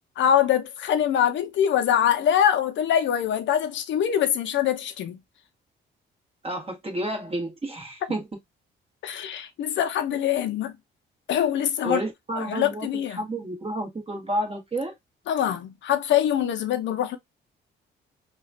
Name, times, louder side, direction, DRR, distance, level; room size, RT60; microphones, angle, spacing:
voice 1, 0.2-5.2 9.0-10.7 11.3-12.0 12.4-13.2 15.3-17.2, left 9 dB, 70° left, 0.6 m, -23 dB
voice 2, 6.4-8.3 11.8-14.9, right 1 dB, 30° right, 1.4 m, -30 dB
2.9 x 2.4 x 2.6 m
cardioid pair, 90°, 20 cm